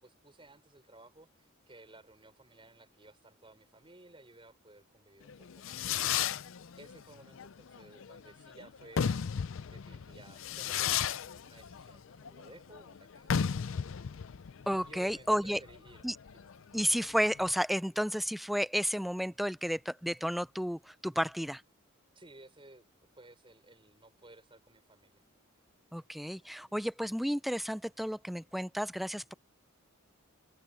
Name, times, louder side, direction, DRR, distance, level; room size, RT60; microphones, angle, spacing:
voice 1, 0.0-9.2 9.7-13.3 14.8-16.2 22.1-22.9 23.1-25.2, right 2 dB, 25° right, 5.8 m, -56 dB
Fireworks, 5.3-17.5, left 8 dB, 65° left, 0.5 m, -35 dB
voice 2, 14.7-15.6 16.0-16.2 16.7-21.6 25.9-29.3, equal, ahead, 0.3 m, -32 dB
open air
head